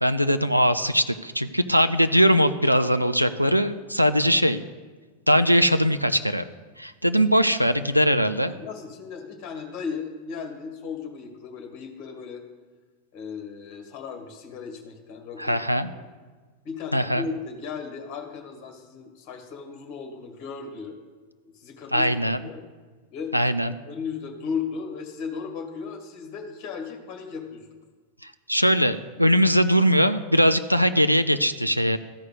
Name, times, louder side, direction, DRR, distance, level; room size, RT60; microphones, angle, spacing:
voice 1, 0.0-4.6 5.3-6.4 6.8-8.5 15.4-15.9 16.9-17.2 21.9-22.4 23.3-23.7 28.2-32.0, equal, 90° right, 10 dB, 0.4 m, -21 dB
voice 2, 8.5-12.4 13.1-15.6 16.0-16.1 16.6-21.0 21.4-22.7 23.1-23.4 23.9-27.7, left 5 dB, 40° left, 4 dB, 1.9 m, -36 dB
14.0 x 4.8 x 8.0 m, 1.4 s
figure-of-eight pair, 90°, 0 cm